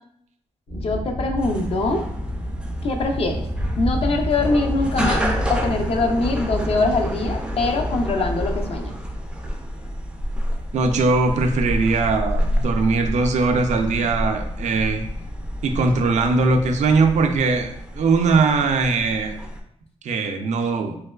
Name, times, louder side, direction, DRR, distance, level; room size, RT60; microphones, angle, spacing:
sound 1, 0.7-19.0, equal, 80° left, 1.2 m, -31 dB
voice 1, 0.7-2.0 2.8-3.5 3.8-5.2 5.5-8.9, left 3 dB, 55° left, 4 dB, 0.4 m, -23 dB
sound 2, 1.4-19.6, equal, 10° right, 0.3 m, -30 dB
voice 2, 10.7-15.0 15.6-19.4 20.0-21.0, right 4 dB, 80° right, 5 dB, 0.4 m, -20 dB
3.2 x 2.9 x 2.3 m, 0.70 s
wide cardioid pair, 150°, 12 cm